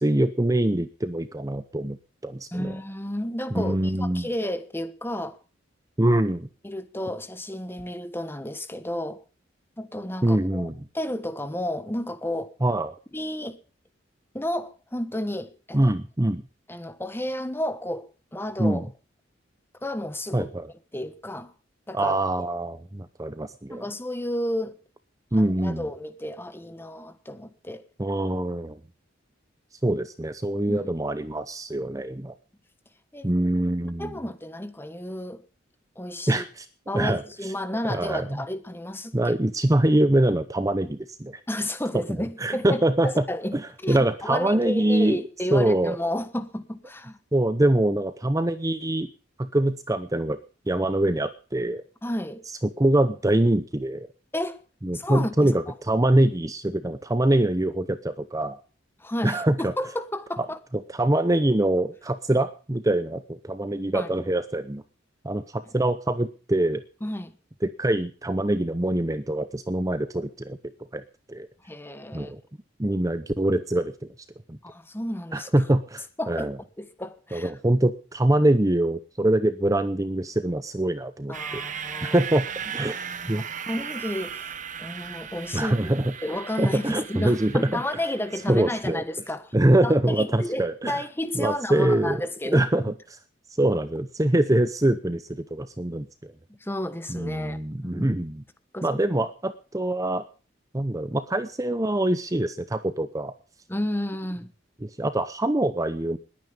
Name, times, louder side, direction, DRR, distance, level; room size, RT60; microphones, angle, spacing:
voice 1, 0.0-2.0 2.2-2.7 3.5-4.3 6.0-6.5 10.2-10.9 12.6-12.9 15.7-16.4 18.6-18.8 20.3-20.7 21.9-23.9 25.3-25.8 28.0-28.8 29.8-32.3 33.2-34.1 36.3-36.7 36.9-37.5 37.9-38.4 39.1-41.4 41.9-43.2 43.5-45.2 45.5-46.0 47.3-49.1 49.4-50.4 50.7-51.8 52.6-54.1 54.8-58.6 59.2-59.7 60.4-60.5 60.9-64.8 65.2-66.8 67.6-70.6 70.9-71.0 71.3-71.5 72.1-72.4 72.8-74.1 74.5-74.6 75.3-76.5 77.3-81.6 82.0-82.5 82.7-83.0 83.3-83.4 85.5-86.0 86.6-87.8 88.5-89.0 89.5-91.0 91.3-92.2 92.5-92.9 93.6-96.3 97.1-98.4 98.8-100.2 100.7-103.3 104.8-106.2, right 1 dB, 20° right, 0.8 m, -24 dB
voice 2, 2.5-5.4 6.6-9.2 9.8-10.7 10.9-12.5 13.1-13.6 14.3-15.9 16.7-18.9 19.8-20.5 20.9-21.5 21.9-22.5 23.7-24.8 25.4-27.8 30.7-30.9 33.1-33.3 34.0-35.4 36.0-36.4 36.9-39.4 41.5-47.2 52.0-52.4 54.3-54.6 54.9-55.7 59.0-60.6 63.9-64.1 67.0-67.3 71.6-72.3 74.6-75.5 76.2-76.5 76.8-77.5 81.3-82.2 83.2-85.7 86.2-89.5 89.8-92.9 96.6-98.1 98.7-99.0 103.7-104.5, left 1 dB, 10° left, 1.3 m, -32 dB
sound 1, 81.3-88.9, right 7 dB, 40° right, 1.3 m, -37 dB
20.5 x 9.4 x 5.2 m
head